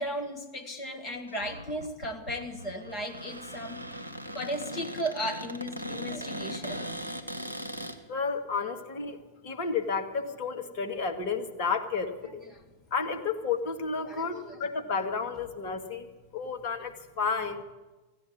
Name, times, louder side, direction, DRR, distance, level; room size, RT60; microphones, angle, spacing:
voice 1, 0.0-3.8 4.3-6.9 12.4-12.6 14.1-14.6, equal, 30° left, 4 dB, 2.5 m, -36 dB
Cupboard open or close, 1.3-8.0, equal, 90° left, 1.4 m, -39 dB
voice 2, 8.1-9.2 9.4-12.4 12.9-17.6, left 5 dB, 45° left, 5 dB, 2.0 m, -31 dB
15.0 x 9.4 x 9.9 m, 1.2 s
figure-of-eight pair, 90°, 0 cm